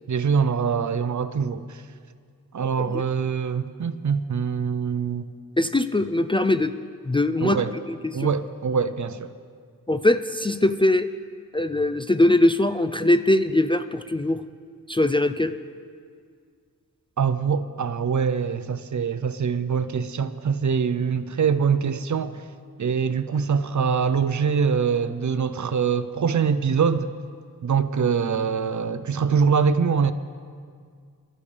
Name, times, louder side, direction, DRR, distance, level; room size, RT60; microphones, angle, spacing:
voice 1, 0.1-1.8 2.5-5.3 7.4-7.8 8.1-9.3 17.2-22.4 22.8-27.1 27.6-30.1, right 6 dB, 55° right, 12 dB, 0.6 m, -24 dB
voice 2, 5.6-6.7 7.1-7.6 8.0-8.3 9.9-11.1 11.5-14.4 14.9-15.5, left 1 dB, 15° left, 9 dB, 0.4 m, -21 dB
23.0 x 12.5 x 3.4 m, 2.1 s
wide cardioid pair, 105°, 35 cm